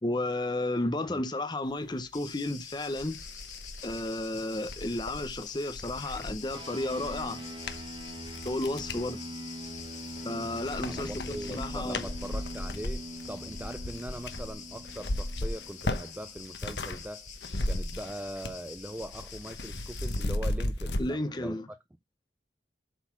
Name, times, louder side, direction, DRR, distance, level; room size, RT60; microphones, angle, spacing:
voice 1, 0.0-3.2 3.8-7.4 8.4-9.2 10.2-12.1 21.0-21.7, left 1 dB, 25° left, 0.7 m, -32 dB
Cricket, 2.1-20.3, left 7 dB, 40° left, 2.4 m, -46 dB
sound 1, 2.4-2.5 2.9-9.1 9.6-10.3 10.6-17.0 17.3-18.7 18.9-21.0, left 1 dB, 65° left, 1.2 m, -36 dB
sound 2, 6.5-16.3, right 1 dB, 25° right, 1.5 m, -43 dB
voice 2, 10.8-17.3 17.7-21.8, right 1 dB, 10° right, 0.4 m, -41 dB
8.1 x 4.0 x 5.8 m
head